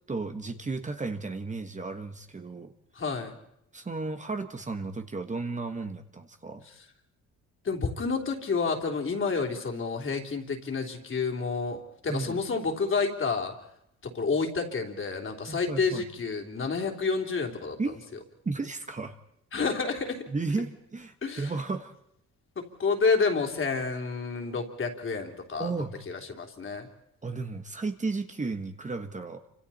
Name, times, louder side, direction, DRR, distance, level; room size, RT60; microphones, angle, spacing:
voice 1, 0.1-2.7 3.7-6.7 12.1-12.4 15.5-16.1 17.8-18.0 18.4-19.1 20.3-21.9 25.6-25.9 27.2-29.4, right 3 dB, 25° right, 6 dB, 1.4 m, -34 dB
voice 2, 2.9-3.4 7.6-13.5 14.0-17.8 19.5-20.3 21.2-21.5 22.5-25.7 26.1-26.9, left 4 dB, 40° left, 3 dB, 3.5 m, -29 dB
28.5 x 26.0 x 4.3 m, 0.77 s
cardioid pair, 90°, 30 cm